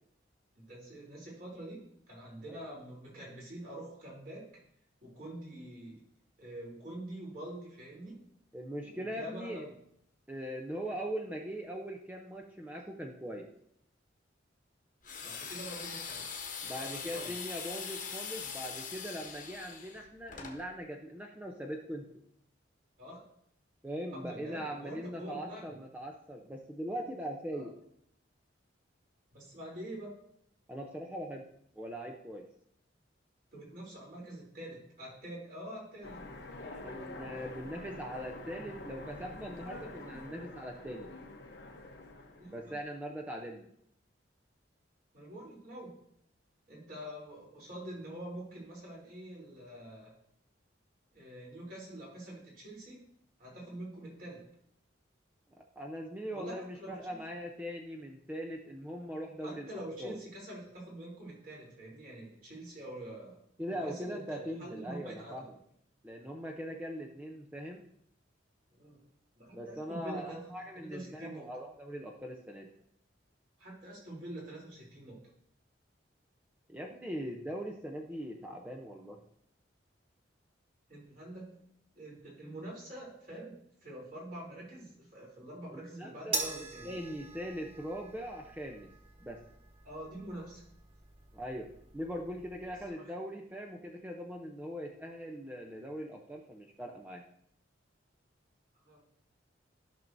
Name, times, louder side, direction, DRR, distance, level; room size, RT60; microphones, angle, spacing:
voice 1, 0.5-4.5 5.0-6.0 6.4-8.2 8.8-9.7 15.2-16.2 16.8-17.3 23.0-23.2 24.1-25.7 27.5-27.7 29.3-30.1 33.5-36.2 42.4-42.7 45.1-46.0 46.7-50.1 51.1-53.0 53.4-54.4 56.3-57.2 59.4-63.4 63.7-65.5 68.7-69.0 69.3-71.5 73.6-75.2 80.9-81.6 81.9-86.9 89.8-90.6 93.0-93.1 98.8-99.0, right 1 dB, 45° right, -5 dB, 3.2 m, -45 dB
voice 2, 8.5-9.7 10.3-13.5 16.6-22.1 23.8-27.7 30.7-31.4 31.7-32.4 36.7-41.1 42.5-43.7 55.8-59.7 60.0-60.2 63.6-65.5 66.0-67.8 69.5-72.7 76.7-79.2 85.7-86.4 86.8-88.9 89.2-89.4 91.3-97.2, equal, 10° right, 0 dB, 0.6 m, -41 dB
sound 1, 15.0-20.6, left 6 dB, 45° left, 1.1 m, -42 dB
Train, 36.0-43.0, left 2 dB, 60° left, 0.9 m, -47 dB
sound 2, 86.3-92.9, right 3 dB, 30° right, 1.0 m, -43 dB
13.5 x 6.0 x 2.6 m, 0.71 s
head